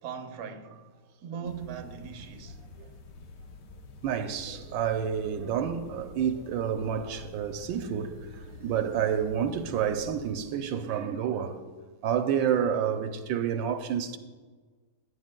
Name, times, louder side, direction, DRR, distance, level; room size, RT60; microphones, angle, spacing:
voice 1, 0.0-0.8 1.2-2.6, right 7 dB, 60° right, 1.2 m, -39 dB
sound 1, 1.4-10.3, left 3 dB, 70° left, 1.4 m, -48 dB
voice 2, 4.0-8.2 8.6-11.6 12.0-14.2, right 8 dB, 85° right, 1.3 m, -29 dB
18.0 x 10.0 x 2.2 m
omnidirectional pair, 2.0 m